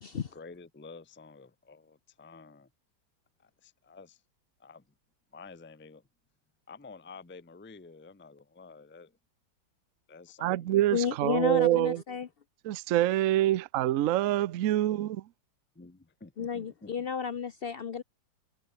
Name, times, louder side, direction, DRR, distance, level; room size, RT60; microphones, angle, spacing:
voice 1, 0.1-2.7 3.4-4.2 4.6-4.8 5.3-6.1 6.7-9.2 10.1-10.9 15.7-16.9, left 4 dB, 10° left, 0.6 m, -50 dB
voice 2, 10.4-12.0 12.6-15.3, right 14 dB, 70° right, 0.8 m, -26 dB
voice 3, 10.9-12.3 16.4-18.0, left 7 dB, 85° left, 0.5 m, -32 dB
omnidirectional pair, 2.1 m